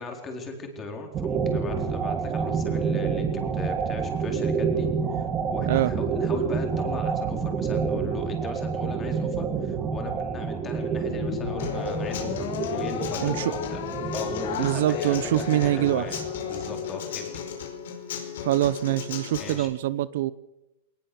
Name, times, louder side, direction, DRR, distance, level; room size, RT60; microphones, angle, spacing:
voice 1, 0.0-3.3 3.5-13.8 14.1-16.2 16.5-17.4 19.4-19.7, left 3 dB, 20° left, 4.3 m, -38 dB
sound 1, 1.1-17.2, right 5 dB, 20° right, 2.1 m, -29 dB
sound 2, 11.1-17.6, left 12 dB, 50° left, 1.5 m, -36 dB
Human voice / Acoustic guitar, 11.6-19.6, left 8 dB, 70° left, 5.1 m, -36 dB
voice 2, 13.2-13.5 14.6-16.1 18.4-20.3, right 14 dB, 60° right, 0.7 m, -24 dB
20.5 x 19.5 x 7.1 m
hypercardioid pair, 145°, 0 cm